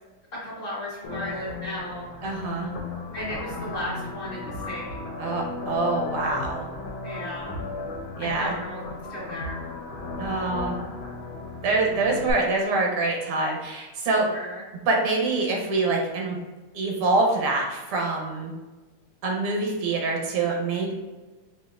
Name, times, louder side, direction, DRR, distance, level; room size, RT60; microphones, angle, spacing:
voice 1, 0.4-2.1 3.1-5.0 7.0-7.6 8.2-8.8 9.1-9.7 14.3-14.6, left 1 dB, 40° left, -7 dB, 1.4 m, -35 dB
sound 1, 1.0-12.3, left 3 dB, 75° left, 1.5 m, -35 dB
voice 2, 2.2-2.7 5.2-6.7 8.2-8.5 10.2-10.8 11.6-14.3 14.9-16.4 16.7-18.5 19.2-20.9, right 3 dB, 90° right, 0 dB, 1.8 m, -25 dB
5.5 x 2.4 x 2.4 m, 1.2 s
omnidirectional pair, 2.3 m